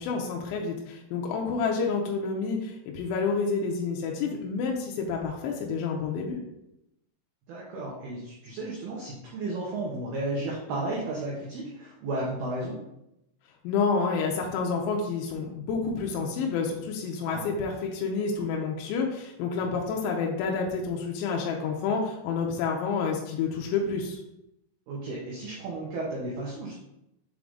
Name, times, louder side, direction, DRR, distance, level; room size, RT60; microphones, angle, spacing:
voice 1, 0.0-6.4 13.6-24.2, left 5 dB, 80° left, 0 dB, 2.8 m, -29 dB
voice 2, 7.5-12.8 17.3-17.4 19.6-19.8 24.9-26.8, right 2 dB, 85° right, -4 dB, 2.2 m, -33 dB
7.5 x 3.8 x 3.6 m, 0.84 s
omnidirectional pair, 6.0 m